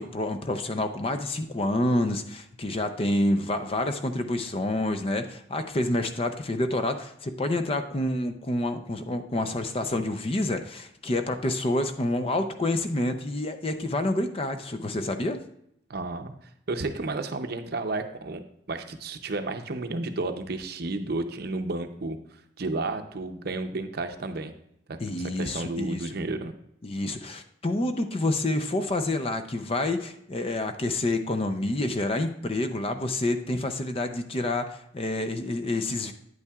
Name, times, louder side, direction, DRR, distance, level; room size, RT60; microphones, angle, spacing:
voice 1, 0.0-15.4 25.0-26.1 26.8-36.1, left 1 dB, 30° left, 8 dB, 0.5 m, -28 dB
voice 2, 15.9-16.3 16.7-18.4 18.7-22.2 22.6-24.5 24.9-26.5, right 2 dB, 55° right, 7 dB, 0.6 m, -32 dB
9.2 x 8.4 x 2.3 m, 0.73 s
head